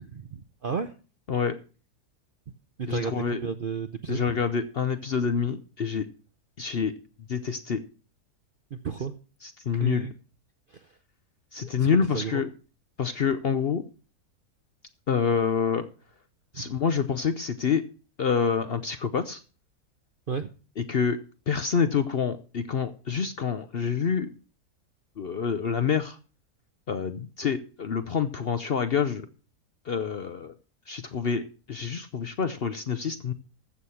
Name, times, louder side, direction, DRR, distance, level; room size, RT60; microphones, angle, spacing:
voice 1, 0.3-0.9 2.8-4.4 8.7-9.1 9.7-10.1 10.7-10.9 11.6-12.4 16.5-16.7 20.3-20.5, right 6 dB, 50° right, 9 dB, 0.6 m, -33 dB
voice 2, 2.9-3.4 4.1-6.1 6.6-6.9 7.3-7.8 9.6-10.1 11.5-12.5 13.0-13.8 15.1-15.9 16.5-17.8 18.2-19.4 20.8-21.2 21.5-24.3 25.2-26.2 26.9-29.3 29.9-30.6 30.9-33.3, left 6 dB, 50° left, 10 dB, 0.7 m, -27 dB
14.5 x 6.6 x 5.6 m, 0.36 s
omnidirectional pair, 1.7 m